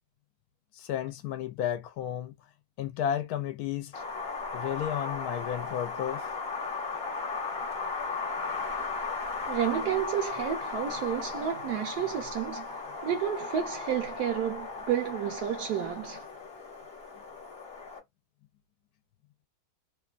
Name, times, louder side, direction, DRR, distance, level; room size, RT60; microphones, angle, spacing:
voice 1, 0.8-2.3 2.8-3.9 4.5-6.2, left 10 dB, 75° left, 1.0 m, -32 dB
Wind, 3.9-18.0, left 4 dB, 45° left, 1.0 m, -36 dB
voice 2, 9.5-16.3, right 9 dB, 80° right, 1.1 m, -31 dB
2.9 x 2.2 x 2.4 m
omnidirectional pair, 1.7 m